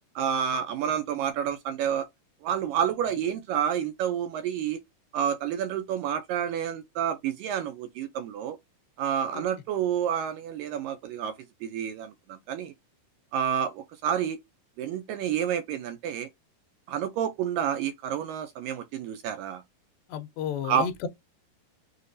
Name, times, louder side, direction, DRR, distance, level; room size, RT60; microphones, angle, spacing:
voice 1, 0.2-2.1 2.4-4.8 5.1-8.6 9.0-11.3 11.6-12.7 13.3-14.4 14.8-16.3 16.9-19.6 20.6-20.9, right 9 dB, 80° right, 2.1 m, -29 dB
voice 2, 20.1-21.1, left 8 dB, 80° left, 2.7 m, -32 dB
6.5 x 2.5 x 2.6 m
omnidirectional pair, 4.4 m